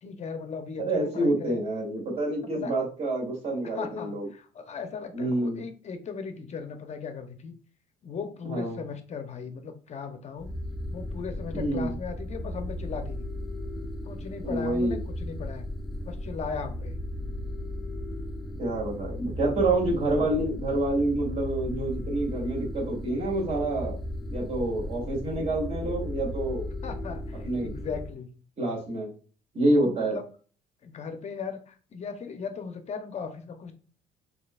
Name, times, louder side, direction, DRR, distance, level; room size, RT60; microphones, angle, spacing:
voice 1, 0.0-1.6 2.4-2.7 3.6-7.5 8.0-10.5 10.9-13.3 14.0-15.7 16.0-17.0 26.8-28.3 30.1-30.2 30.8-33.7, left 5 dB, 40° left, 7 dB, 0.7 m, -37 dB
voice 2, 0.8-4.3 5.1-5.6 8.4-8.8 11.5-11.9 14.4-15.0 18.6-23.9 24.3-26.7 27.4-27.7 28.6-29.1 29.5-30.2, right 1 dB, 40° right, -3 dB, 2.2 m, -27 dB
sound 1, 10.4-28.1, left 1 dB, ahead, 0.6 m, -36 dB
6.5 x 2.8 x 2.3 m, 0.41 s
cardioid pair, 110°, 17 cm